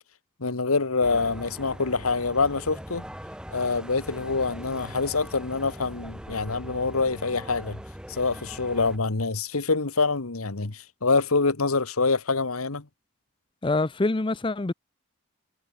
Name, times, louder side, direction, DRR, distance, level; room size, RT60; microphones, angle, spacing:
voice 1, 0.4-3.0 3.5-7.8 8.1-12.9, left 4 dB, 90° left, 1.5 m, -25 dB
sound 1, 1.0-9.0, equal, 5° right, 1.6 m, -41 dB
voice 2, 13.6-14.7, left 2 dB, 25° left, 0.5 m, -25 dB
head